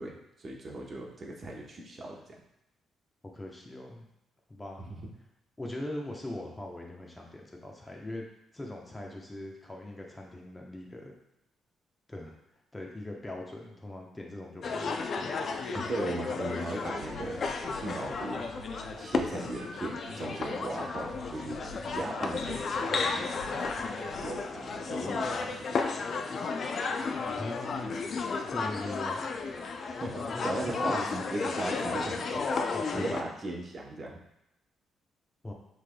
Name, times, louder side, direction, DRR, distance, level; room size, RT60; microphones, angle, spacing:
voice 1, 0.0-2.3 4.9-5.0 15.7-17.4 17.7-18.4 19.0-21.6 21.9-22.8 23.1-23.9 24.2-25.7 30.0-32.4 32.9-34.2, right 2 dB, 40° right, -1 dB, 0.9 m, -37 dB
voice 2, 3.3-4.1 4.5-4.9 5.6-8.3 8.5-11.1 12.1-12.3 12.7-15.4 27.4-28.0 28.5-29.3 30.1-31.2 32.7-33.1 35.4-35.5, left 1 dB, 15° left, -1 dB, 0.9 m, -41 dB
sound 1, 14.6-33.2, left 4 dB, 50° left, 0.4 m, -33 dB
sound 2, 16.7-24.5, right 1 dB, 85° right, 1.3 m, -46 dB
5.7 x 3.4 x 2.3 m, 0.87 s
cardioid pair, 90°, 0 cm